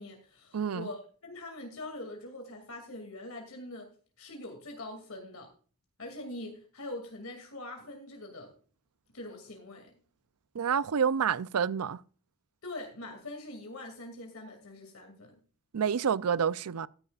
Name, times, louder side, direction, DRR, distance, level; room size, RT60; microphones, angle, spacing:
voice 1, 0.0-3.9 4.2-5.5 6.0-8.5 9.1-9.9 12.6-15.3, left 2 dB, 70° left, 2.5 m, -43 dB
voice 2, 0.5-0.9 10.5-12.0 15.7-16.9, right 7 dB, 85° right, 0.5 m, -28 dB
15.0 x 11.0 x 2.4 m
head